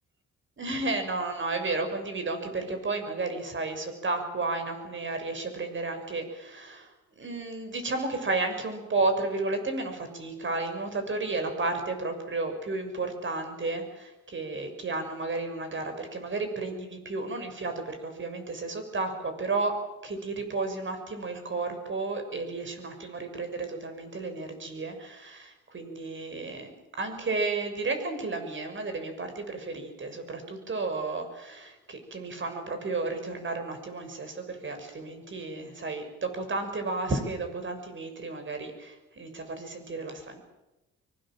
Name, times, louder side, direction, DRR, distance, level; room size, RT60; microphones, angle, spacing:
voice 1, 0.6-6.9 7.2-19.7 20.0-40.5, right 3 dB, 40° right, 6 dB, 6.5 m, -32 dB
24.0 x 23.5 x 7.7 m, 0.98 s
cardioid pair, 90°, 30 cm